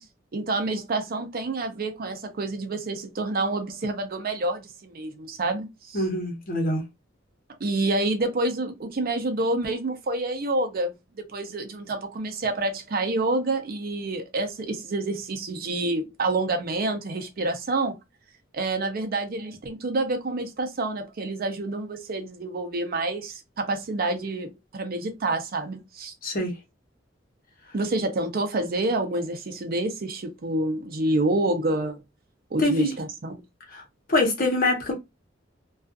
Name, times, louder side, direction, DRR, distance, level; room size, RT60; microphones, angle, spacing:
voice 1, 0.3-6.0 7.6-18.0 18.5-26.1 27.7-32.0 32.5-33.4, right 2 dB, 50° right, 0.5 m, -28 dB
voice 2, 5.9-6.8 26.2-26.5 32.6-32.9 33.7-33.8 34.1-34.9, left 1 dB, 50° left, 0.9 m, -24 dB
2.4 x 2.3 x 2.4 m
head